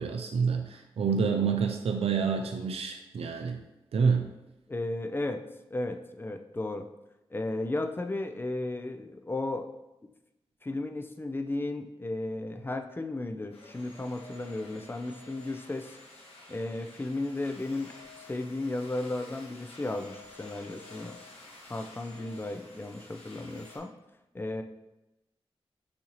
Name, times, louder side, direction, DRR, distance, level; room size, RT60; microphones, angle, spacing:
voice 1, 0.0-3.6 3.9-4.3, right 5 dB, 75° right, 4 dB, 0.4 m, -28 dB
voice 2, 4.7-5.4 5.7-6.9 7.3-9.7 10.0-10.1 10.6-16.0 16.5-17.9 18.3-21.2 21.7-23.9 24.3-24.6, left 2 dB, 20° left, 6 dB, 0.4 m, -34 dB
sound 1, 13.5-23.8, left 2 dB, 80° left, 1.1 m, -51 dB
6.3 x 2.7 x 3.0 m, 0.94 s
wide cardioid pair, 75°, 10 cm